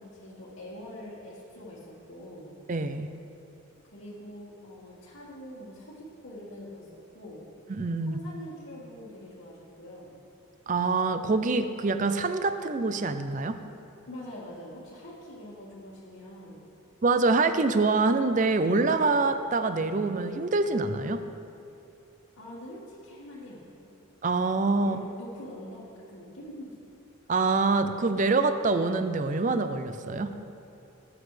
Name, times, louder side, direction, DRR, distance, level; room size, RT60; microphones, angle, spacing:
voice 1, 0.0-2.5 3.8-7.4 8.0-10.1 14.1-16.6 22.4-23.6 24.8-26.8, left 1 dB, 75° left, -9 dB, 1.9 m, -44 dB
voice 2, 2.7-3.1 7.7-8.2 10.7-13.6 17.0-21.2 24.2-25.0 27.3-30.3, right 3 dB, 35° right, 9 dB, 0.5 m, -25 dB
18.5 x 8.1 x 3.3 m, 2.8 s
head